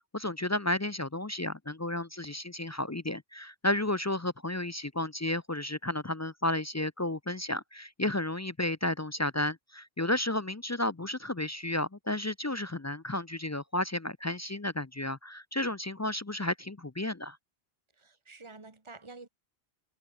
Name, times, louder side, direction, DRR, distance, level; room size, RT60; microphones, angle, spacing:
voice 1, 0.1-17.4, left 1 dB, 25° left, 0.4 m, -32 dB
voice 2, 18.0-19.3, right 3 dB, 25° right, 2.0 m, -49 dB
omnidirectional pair, 1.1 m